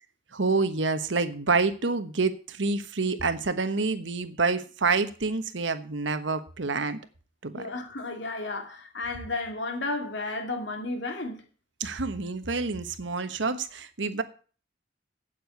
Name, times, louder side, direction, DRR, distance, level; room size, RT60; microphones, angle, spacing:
voice 1, 0.3-7.0 7.4-7.6 11.8-14.2, right 4 dB, 85° right, 1.2 m, -27 dB
voice 2, 7.5-11.4, left 2 dB, 80° left, 2.4 m, -33 dB
8.6 x 7.8 x 8.2 m
head